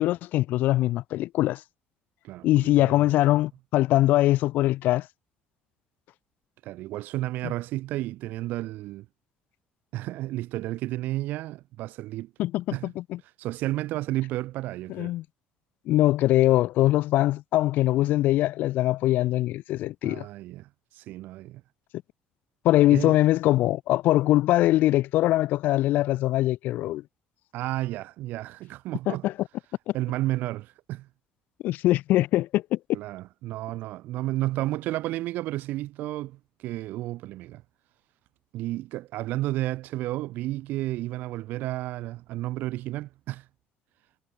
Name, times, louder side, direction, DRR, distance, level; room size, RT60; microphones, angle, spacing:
voice 1, 0.0-1.6 2.4-5.1 12.4-13.2 14.9-15.2 15.9-20.3 22.6-27.0 29.1-29.3 29.9-30.0 31.6-32.8, left 15 dB, 65° left, 1.1 m, -22 dB
voice 2, 2.2-3.1 6.6-9.0 9.9-12.3 12.7-12.9 13.4-15.1 20.0-21.6 22.9-23.2 27.5-29.2 29.9-31.1 32.9-37.6 38.5-43.4, right 16 dB, 70° right, 3.3 m, -32 dB
cardioid pair, 150°, 3 cm